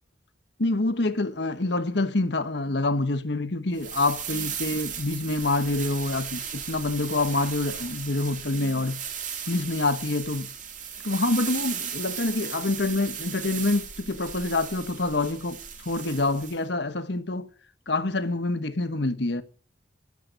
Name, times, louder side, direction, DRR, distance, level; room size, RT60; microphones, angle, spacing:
voice 1, 0.6-9.0 9.5-10.5 11.0-17.5 17.9-19.4, left 2 dB, 65° left, 1.3 m, -26 dB
sound 1, 3.7-16.6, right 8 dB, 40° right, 2.6 m, -36 dB
13.5 x 7.6 x 9.6 m
head